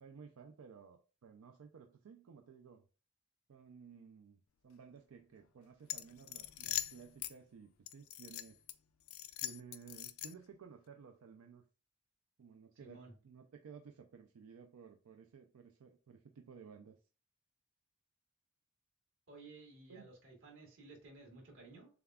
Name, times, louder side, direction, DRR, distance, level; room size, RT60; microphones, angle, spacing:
voice 1, 0.0-2.8 3.5-8.6 9.4-11.6 12.4-17.0 19.9-20.1, right 6 dB, 90° right, 0.4 m, -56 dB
sound 1, 5.8-7.3 7.9-8.7 9.1-10.5, left 14 dB, 80° left, 0.4 m, -42 dB
voice 2, 12.8-13.1 19.3-21.9, right 3 dB, 65° right, 1.7 m, -55 dB
6.8 x 2.4 x 2.3 m
head